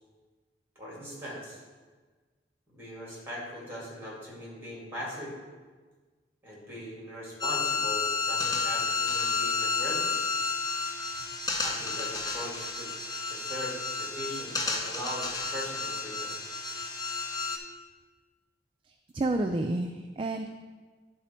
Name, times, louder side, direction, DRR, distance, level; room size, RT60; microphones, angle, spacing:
voice 1, 0.8-1.6 2.7-5.3 6.4-10.2 11.6-12.9 13.3-16.3, equal, 15° right, -5 dB, 2.4 m, -40 dB
sound 1, 7.4-17.6, left 4 dB, 20° left, 0.6 m, -31 dB
voice 2, 19.1-20.6, right 2 dB, 30° right, 5 dB, 0.3 m, -30 dB
10.5 x 4.1 x 4.4 m, 1.4 s
head